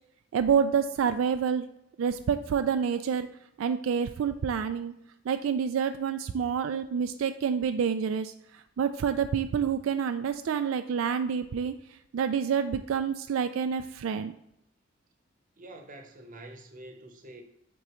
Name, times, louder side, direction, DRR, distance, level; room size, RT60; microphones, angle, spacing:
voice 1, 0.3-1.7 2.0-3.3 3.6-4.9 5.3-11.7 12.1-14.3, right 7 dB, 90° right, 8 dB, 0.3 m, -28 dB
voice 2, 15.6-17.4, right 1 dB, 45° right, 5 dB, 0.9 m, -46 dB
8.0 x 3.9 x 3.0 m, 0.77 s
head